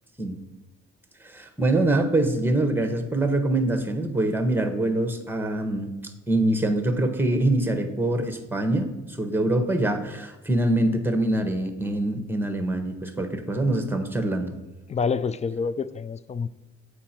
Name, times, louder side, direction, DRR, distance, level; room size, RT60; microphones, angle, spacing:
voice 1, 1.2-14.5, right 1 dB, 5° right, 7 dB, 1.0 m, -24 dB
voice 2, 14.9-16.5, left 5 dB, 25° left, 15 dB, 0.3 m, -27 dB
7.5 x 5.2 x 4.3 m, 1.1 s
cardioid pair, 90°, 30 cm